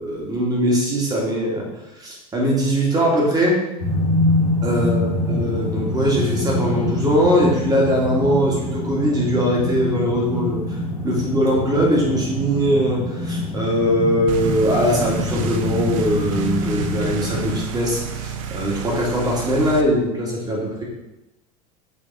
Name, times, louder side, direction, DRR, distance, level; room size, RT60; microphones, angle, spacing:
voice 1, 0.0-1.7 2.0-3.6 4.6-10.6 11.0-20.8, equal, 20° right, -3 dB, 2.3 m, -21 dB
sound 1, 3.8-17.6, left 1 dB, 85° left, 1.6 m, -25 dB
sound 2, 14.3-19.8, right 7 dB, 55° right, 0.6 m, -31 dB
6.9 x 4.0 x 4.1 m, 0.94 s
figure-of-eight pair, 75°, 20 cm